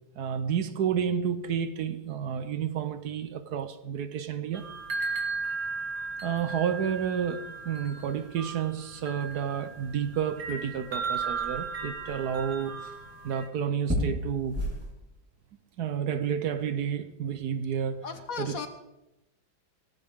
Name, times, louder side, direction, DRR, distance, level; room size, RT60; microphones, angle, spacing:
voice 1, 0.2-4.7 6.2-13.0 13.2-14.6 15.8-18.0 18.4-18.7, right 8 dB, 65° right, 1.3 m, -30 dB
sound 1, 4.5-13.5, right 4 dB, 50° right, 2.4 m, -36 dB
sound 2, 8.9-14.9, equal, 5° right, 4.2 m, -38 dB
voice 2, 18.0-18.7, left 5 dB, 55° left, 1.4 m, -36 dB
17.0 x 15.0 x 3.6 m
omnidirectional pair, 1.9 m